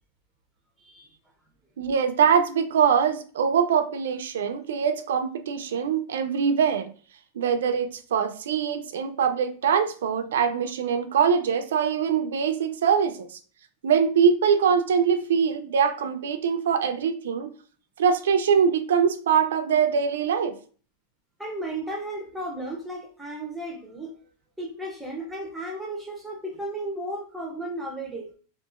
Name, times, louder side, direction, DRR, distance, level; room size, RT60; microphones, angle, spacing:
voice 1, 1.8-6.9 7.4-13.4 13.8-17.5 18.0-20.6, right 7 dB, 90° right, 8 dB, 0.3 m, -23 dB
voice 2, 21.4-24.1 24.6-28.3, right 1 dB, ahead, 1 dB, 0.5 m, -34 dB
2.8 x 2.3 x 2.4 m, 0.41 s
supercardioid pair, 155°, 0 cm